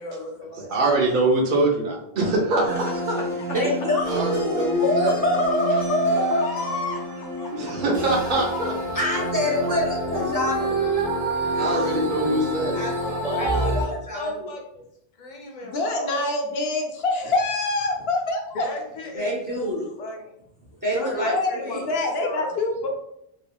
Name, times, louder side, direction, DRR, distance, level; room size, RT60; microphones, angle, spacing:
voice 1, 0.0-0.7 2.6-2.9 6.1-7.7 8.2-9.3 11.5-12.1 13.2-14.8 15.2-16.1 18.5-19.3 19.5-20.4 20.9-21.8 22.2-22.5, left 1 dB, 50° left, 1 dB, 0.7 m, -34 dB
voice 2, 0.7-3.2 4.1-5.2 7.5-8.7 9.6-9.7 11.6-13.2, right 2 dB, 55° right, 0 dB, 0.8 m, -24 dB
sound 1, 2.7-13.8, right 1 dB, 80° right, 1.7 m, -28 dB
voice 3, 3.5-6.4 8.9-10.8 12.7-13.7 14.1-14.5 19.1-19.8 20.8-21.9, equal, 20° right, -4 dB, 0.7 m, -25 dB
voice 4, 15.7-18.7 21.2-22.9, left 2 dB, 75° left, 2 dB, 0.8 m, -25 dB
3.4 x 2.3 x 2.3 m, 0.79 s
omnidirectional pair, 1.0 m